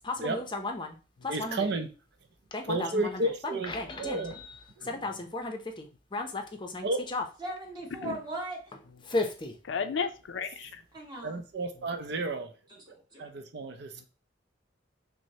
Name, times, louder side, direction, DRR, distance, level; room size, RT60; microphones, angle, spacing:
voice 1, 0.0-0.9 1.2-1.7 2.5-3.2 3.5-4.5 4.8-7.2 9.0-9.6, left 2 dB, 25° left, 4 dB, 0.6 m, -34 dB
voice 2, 1.3-1.9 2.6-4.4 4.8-5.0 6.8-7.1 11.2-12.5 13.2-14.1, right 2 dB, 60° right, 7 dB, 0.5 m, -32 dB
voice 3, 7.4-8.6 10.9-11.4 12.9-13.3, right 2 dB, 25° right, -1 dB, 1.2 m, -39 dB
voice 4, 9.7-10.8, left 6 dB, 75° left, 9 dB, 0.4 m, -33 dB
6.1 x 2.1 x 2.7 m, 0.34 s
head